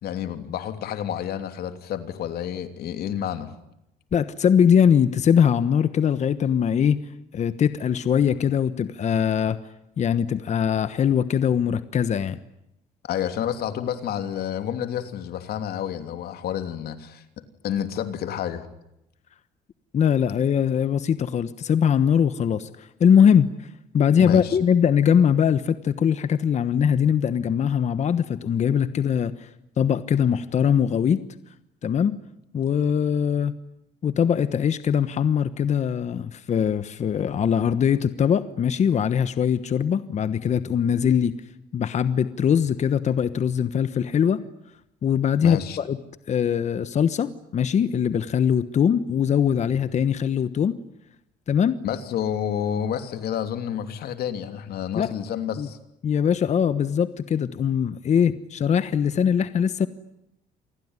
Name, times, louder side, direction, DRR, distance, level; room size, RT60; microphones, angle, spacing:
voice 1, 0.0-3.5 13.0-17.2 17.6-18.7 24.2-24.6 45.4-45.8 51.8-55.8, left 9 dB, 65° left, 8 dB, 3.1 m, -29 dB
voice 2, 4.1-7.0 7.3-9.6 10.0-12.4 19.9-23.5 23.9-29.5 29.8-31.2 31.8-32.2 32.5-33.5 34.0-41.3 41.7-44.4 45.0-46.0 46.3-50.8 51.5-51.8 54.9-55.1 55.6-55.7 56.0-59.9, left 8 dB, 45° left, 13 dB, 1.2 m, -21 dB
28.0 x 20.0 x 9.8 m, 0.84 s
cardioid pair, 110°, 17 cm